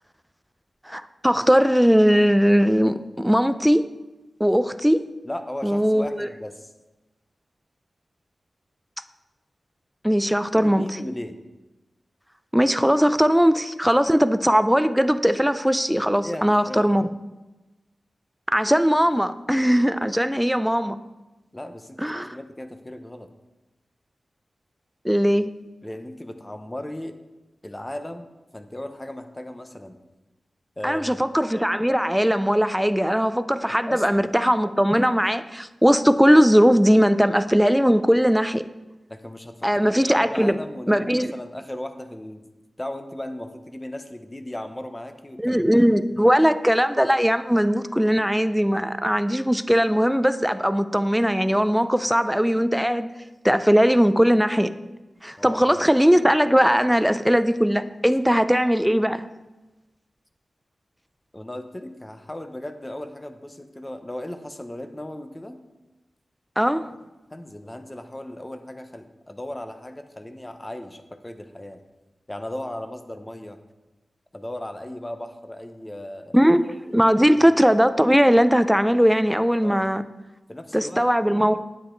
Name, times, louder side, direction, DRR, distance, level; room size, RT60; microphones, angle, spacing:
voice 1, 0.9-3.9 4.4-5.1 5.6-6.3 10.0-11.0 12.5-17.0 18.5-21.0 22.0-22.4 25.0-25.5 30.8-38.6 39.6-40.5 40.9-41.3 45.4-53.1 53.4-54.7 55.2-59.3 66.6-66.9 76.3-76.6 76.9-80.0 80.7-81.6, equal, 5° right, 11 dB, 0.5 m, -19 dB
voice 2, 5.2-6.7 10.5-11.4 16.2-17.1 21.5-23.3 25.8-27.1 27.6-30.0 30.8-31.1 33.9-34.3 39.1-42.5 42.8-45.6 55.4-55.8 61.3-65.6 67.3-71.8 72.3-73.6 74.3-76.4 77.2-77.5 79.6-79.9 80.5-81.1, left 1 dB, 15° left, 7 dB, 0.8 m, -36 dB
9.3 x 8.4 x 4.5 m, 1.1 s
wide cardioid pair, 90°, 0 cm